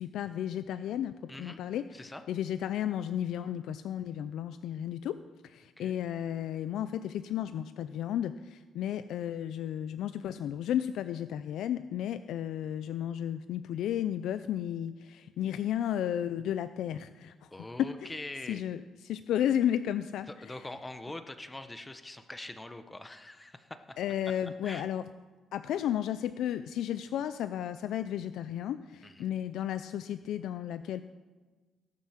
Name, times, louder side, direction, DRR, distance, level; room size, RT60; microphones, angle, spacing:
voice 1, 0.0-17.5 17.8-18.2 18.5-20.6 24.0-25.0 25.5-31.0, left 10 dB, 75° left, 12 dB, 0.4 m, -33 dB
voice 2, 1.3-1.6 1.9-2.2 5.8-5.9 17.5-18.6 20.3-24.0 24.6-24.9 29.0-29.3, left 2 dB, 15° left, 9 dB, 0.9 m, -43 dB
17.5 x 7.6 x 5.8 m, 1.3 s
cardioid pair, 110°, 0 cm